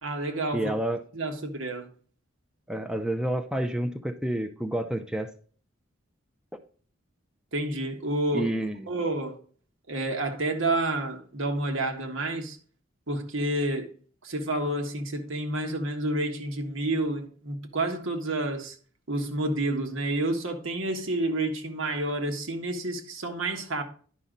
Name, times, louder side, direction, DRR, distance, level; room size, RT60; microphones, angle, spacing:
voice 1, 0.0-0.8 1.1-1.9 7.5-8.5 8.9-9.4 9.9-12.6 13.1-13.9 14.2-18.7 19.1-23.8, right 2 dB, 80° right, 1.6 m, -29 dB
voice 2, 0.5-1.0 2.7-5.3 8.3-8.9, right 1 dB, 5° right, 0.5 m, -29 dB
11.0 x 5.7 x 3.9 m
head